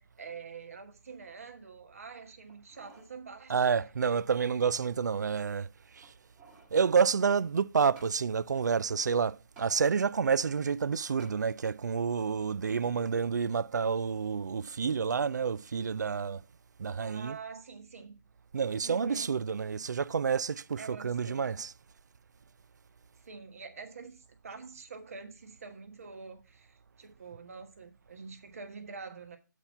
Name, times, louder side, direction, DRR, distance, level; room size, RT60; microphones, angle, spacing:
voice 1, 0.0-3.8 17.0-18.2 18.8-19.4 20.8-21.5 23.2-29.4, right 5 dB, 45° right, 1.3 m, -46 dB
sound 1, 2.5-3.1 3.6-3.7 4.4-5.0 6.0-6.8 8.0-8.2 9.6-9.7 11.2-11.4 12.0-12.1, right 3 dB, 10° right, 1.4 m, -56 dB
voice 2, 3.5-6.1 6.7-16.4 16.8-17.4 18.5-21.7, right 6 dB, 65° right, 0.4 m, -29 dB
7.8 x 4.5 x 5.6 m
hypercardioid pair, 165°, 10 cm